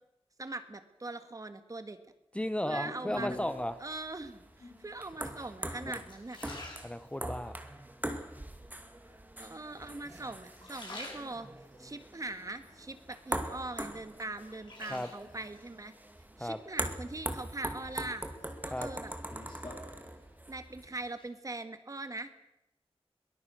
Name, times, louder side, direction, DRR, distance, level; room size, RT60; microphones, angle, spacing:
voice 1, 0.4-2.0 2.6-3.4 3.8-6.4 9.4-11.5 11.8-15.9 16.4-18.3 18.6-19.1 20.5-22.3, right 2 dB, 35° right, 10 dB, 1.8 m, -41 dB
voice 2, 2.3-3.7 5.9-6.0 6.8-7.6 14.9-15.1 16.4-16.6 18.7-18.9, left 1 dB, 10° left, 11 dB, 0.9 m, -34 dB
sound 1, 2.7-3.7 4.5-5.0 5.5-7.5 8.0-8.6 9.4-10.1 10.4-11.8 12.2-13.5 13.9-15.5 16.9-17.5 17.9-20.5 20.8-21.3, left 2 dB, 50° left, 6.2 m, -48 dB
sound 2, 3.1-20.9, right 1 dB, 15° right, 2.2 m, -42 dB
23.0 x 19.5 x 6.4 m, 0.85 s
wide cardioid pair, 100°, 10 cm